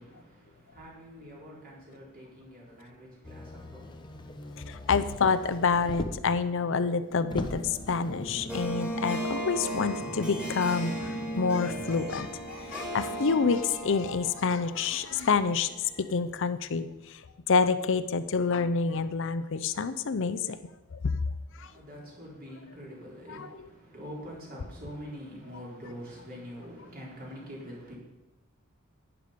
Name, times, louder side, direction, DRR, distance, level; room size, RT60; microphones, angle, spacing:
voice 1, 0.0-4.6 21.6-27.9, equal, 45° right, 4.1 m, -45 dB
Motor vehicle (road), 3.2-6.4 6.9-7.0 7.3-8.7 9.6-9.7, left 1 dB, 20° left, 1.0 m, -40 dB
voice 2, 4.6-20.6 20.9-21.1 21.6-21.7 23.3-23.7, left 5 dB, 60° left, 0.6 m, -28 dB
sound 1, 7.1-14.9, right 1 dB, 40° left, 1.4 m, -39 dB
Harp, 8.5-16.0, right 1 dB, 5° right, 2.5 m, -38 dB
11.5 x 10.0 x 5.2 m
head